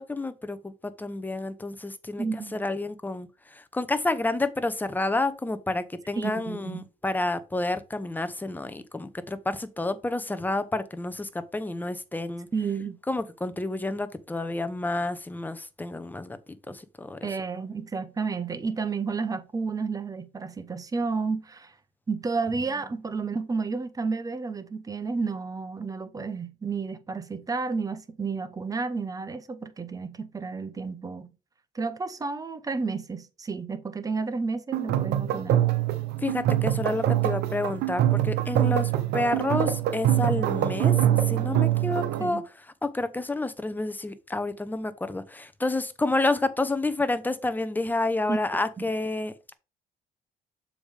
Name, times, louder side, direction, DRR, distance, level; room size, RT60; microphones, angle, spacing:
voice 1, 0.0-2.2 2.5-12.5 13.1-16.4 16.7-17.2 36.2-41.0 41.3-42.4 42.8-49.5, left 2 dB, 10° left, 0.9 m, -29 dB
voice 2, 2.2-2.6 6.2-6.8 12.5-13.0 17.2-21.7 22.1-31.3 31.7-35.7 42.2-42.4 48.3-48.4, right 4 dB, 20° right, 0.9 m, -31 dB
sound 1, 34.7-42.3, right 12 dB, 80° right, 0.9 m, -24 dB
7.0 x 5.0 x 3.4 m
cardioid pair, 110°, 17 cm